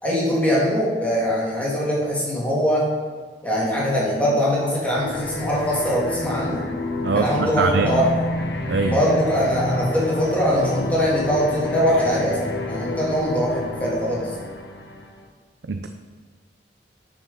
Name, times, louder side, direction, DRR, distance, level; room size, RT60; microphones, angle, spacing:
voice 1, 0.0-2.9 3.4-6.6 7.1-8.1 8.9-12.4 12.7-14.3, equal, 10° left, -6 dB, 3.0 m, -22 dB
sound 1, 4.7-15.3, left 1 dB, 75° left, 1.4 m, -29 dB
voice 2, 7.0-8.0 8.6-9.0 15.6-15.9, right 4 dB, 80° right, 6 dB, 0.6 m, -23 dB
12.0 x 6.2 x 5.7 m, 1.5 s
head